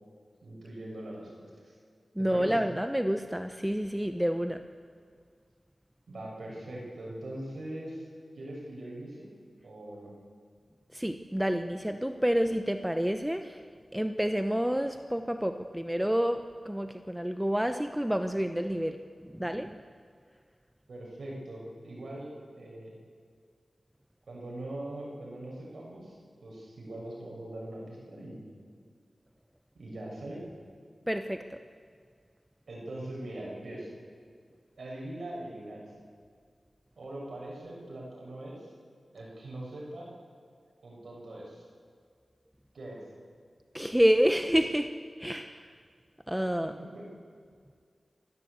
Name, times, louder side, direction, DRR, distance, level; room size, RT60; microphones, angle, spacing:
voice 1, 0.4-1.7 2.2-2.6 6.1-8.0 8.4-9.3 9.6-10.1 20.9-23.0 24.3-26.2 26.4-28.5 29.7-30.4 32.7-33.9 34.8-35.9 37.0-38.7 39.1-40.1 40.8-41.6 42.7-43.0 46.9-47.0, right 1 dB, 85° right, -3 dB, 6.7 m, -41 dB
voice 2, 2.2-4.6 10.9-13.6 13.9-19.0 19.2-19.8 31.1-31.6 43.7-44.9 45.2-45.7 46.3-46.7, equal, 5° right, 8 dB, 0.9 m, -28 dB
27.5 x 15.5 x 8.2 m, 2.1 s
wide cardioid pair, 75°, 0 cm